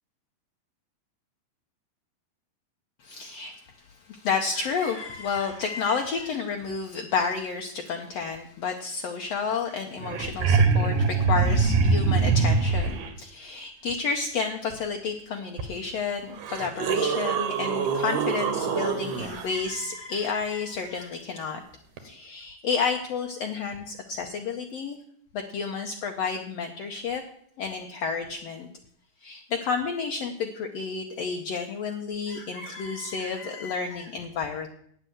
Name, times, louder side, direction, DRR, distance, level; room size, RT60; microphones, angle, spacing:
voice 1, 3.0-21.6 22.0-25.0 25.3-27.2 27.6-28.7 29.2-34.7, left 5 dB, 80° left, 4 dB, 1.4 m, -31 dB
sound 1, 9.7-9.8 10.0-13.1 15.6-15.7 16.3-19.5 22.0-22.1, right 4 dB, 70° right, 2.5 m, -24 dB
9.2 x 8.1 x 7.8 m, 0.68 s
omnidirectional pair, 4.0 m